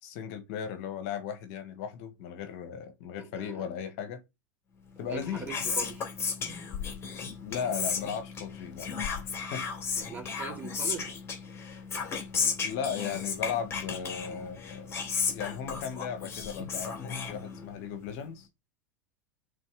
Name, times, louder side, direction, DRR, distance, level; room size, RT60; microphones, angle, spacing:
voice 1, 0.0-4.2 5.0-5.5 7.4-8.9 9.2-9.6 12.6-14.9 15.3-18.5, left 7 dB, 50° left, 1.4 m, -36 dB
voice 2, 3.2-3.7 5.1-6.1 10.0-11.2, right 5 dB, 15° right, 2.5 m, -41 dB
Whispering, 5.0-17.9, left 5 dB, 25° left, 2.9 m, -34 dB
6.1 x 4.0 x 6.2 m
figure-of-eight pair, 85°, 10 cm